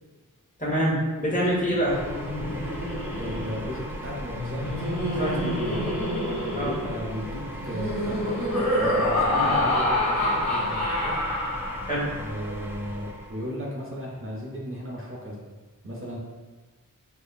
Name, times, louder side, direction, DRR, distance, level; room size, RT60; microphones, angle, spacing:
voice 1, 0.6-2.0 5.2-5.4 6.5-6.7 9.3-9.5 11.8-12.1, equal, 25° left, -6 dB, 1.1 m, -25 dB
Laughter, 1.7-12.2, left 1 dB, 55° left, 1.4 m, -27 dB
sound 1, 1.9-13.5, equal, 5° right, 0.4 m, -38 dB
voice 2, 3.2-6.0 6.5-8.4 8.8-11.2 12.2-15.5 15.8-16.2, equal, 40° right, -4 dB, 0.7 m, -36 dB
5.2 x 2.1 x 2.3 m, 1.3 s
wide cardioid pair, 80°, 34 cm